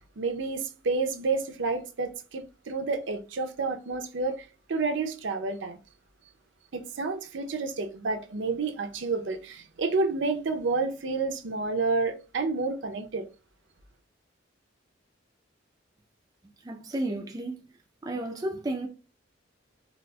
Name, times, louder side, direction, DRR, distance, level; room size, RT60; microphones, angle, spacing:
voice 1, 0.0-5.8 6.7-13.3, right 3 dB, 70° right, 0.6 m, -30 dB
voice 2, 16.6-17.6 18.0-18.9, right 1 dB, 20° right, 0.3 m, -32 dB
4.0 x 2.4 x 2.2 m
head